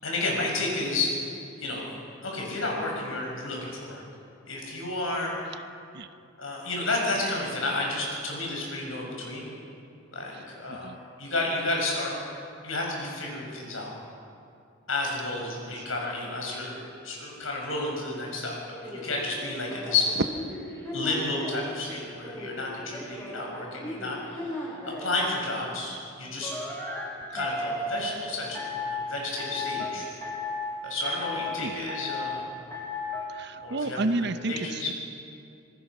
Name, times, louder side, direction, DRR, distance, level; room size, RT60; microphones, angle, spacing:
voice 1, 0.0-1.3 1.6-1.9 2.2-4.0 4.5-5.3 6.4-9.5 10.1-12.1 12.6-13.9 14.9-20.2 20.9-26.5 27.3-30.1 30.8-32.5 33.6-34.9, left 2 dB, 80° left, -1 dB, 6.6 m, -31 dB
sound 1, 18.7-21.7 22.2-25.2 26.4-28.1 28.5-29.0 29.4-29.9 30.2-30.7 31.0-31.6 31.9-32.3 32.7-33.2, left 2 dB, 10° left, 7.3 m, -35 dB
voice 2, 31.6-31.9 33.3-34.9, right 2 dB, 55° right, 11 dB, 0.8 m, -31 dB
26.5 x 20.0 x 6.2 m, 2.4 s
head